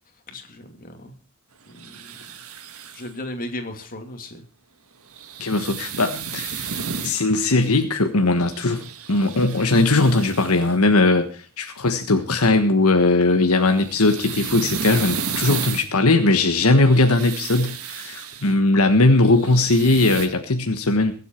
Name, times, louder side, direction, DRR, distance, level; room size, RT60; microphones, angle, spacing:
voice 1, 0.3-1.1 1.7-2.2 2.9-4.4, left 1 dB, 40° left, 5 dB, 2.7 m, -36 dB
sound 1, 1.7-3.1 5.1-7.2 8.4-10.8 13.5-15.9 16.6-18.5 19.2-20.3, right 6 dB, 75° right, 1.7 m, -33 dB
voice 2, 5.4-6.8 7.0-21.1, left 2 dB, 75° left, 6 dB, 1.4 m, -19 dB
22.5 x 8.3 x 4.6 m, 0.39 s
head